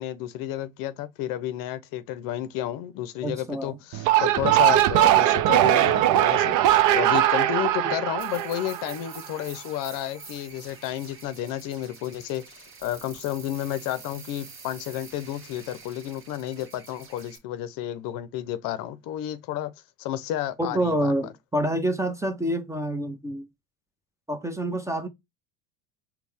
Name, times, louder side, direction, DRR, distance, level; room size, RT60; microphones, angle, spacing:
voice 1, 0.0-19.7 20.0-21.1, left 12 dB, 55° left, 0.6 m, -31 dB
voice 2, 3.2-3.8 7.8-7.9 20.6-23.5 24.3-25.1, right 1 dB, 5° right, 0.7 m, -27 dB
sound 1, 3.9-9.3, right 13 dB, 50° right, 0.6 m, -20 dB
sound 2, 8.2-17.4, right 4 dB, 30° right, 1.1 m, -47 dB
4.2 x 2.2 x 3.4 m
hypercardioid pair, 85°, 40 cm